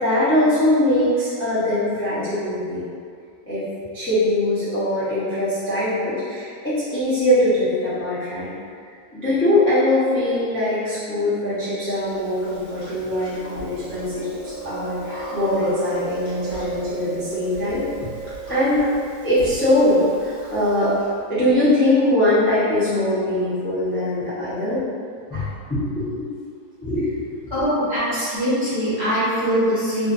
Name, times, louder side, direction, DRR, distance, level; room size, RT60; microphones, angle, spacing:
voice 1, 0.0-2.9 3.5-3.6 3.9-8.5 9.1-17.8 18.5-18.8 19.2-21.0 21.3-24.8 25.3-26.2 26.8-27.5, left 1 dB, 20° left, -13 dB, 0.3 m, -21 dB
Chewing mastication, 12.1-21.1, right 3 dB, 45° left, 1.0 m, -34 dB
voice 2, 27.5-30.1, equal, 30° right, -15 dB, 0.6 m, -22 dB
2.6 x 2.5 x 2.4 m, 2.2 s
omnidirectional pair, 1.7 m